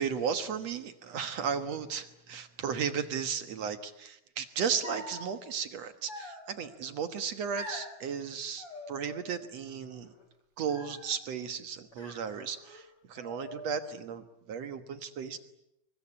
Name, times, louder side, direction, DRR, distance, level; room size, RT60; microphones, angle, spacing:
voice 1, 0.0-10.1 10.6-15.4, right 7 dB, 60° right, 9 dB, 2.0 m, -35 dB
sound 1, 4.8-5.3 6.1-6.8 7.6-7.9 8.6-9.4 9.7-10.2 10.7-11.2 11.9-12.8 13.2-13.9, left 1 dB, 35° left, 6.7 m, -45 dB
27.5 x 23.5 x 8.6 m, 0.82 s
omnidirectional pair, 4.2 m